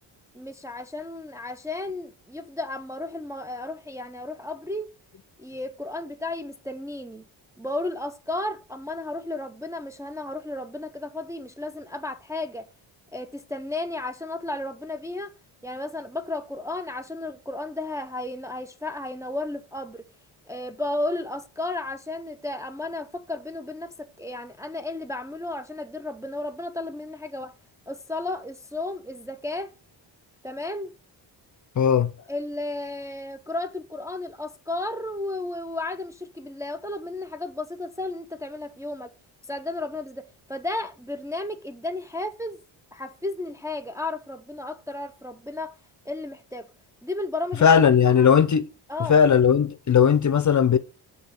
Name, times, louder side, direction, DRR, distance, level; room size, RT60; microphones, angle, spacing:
voice 1, 0.3-4.9 5.4-7.2 7.6-12.7 13.1-15.3 15.6-20.1 20.5-27.5 27.9-29.7 30.4-30.9 32.3-39.1 39.5-42.6 42.9-45.8 46.1-46.7 47.0-47.8 48.2-48.3 48.9-49.2, left 2 dB, 5° right, 0.5 m, -33 dB
voice 2, 31.8-32.1 47.6-48.7 49.1-50.8, left 7 dB, 40° left, 0.6 m, -17 dB
6.1 x 3.8 x 5.6 m
cardioid pair, 70°, 49 cm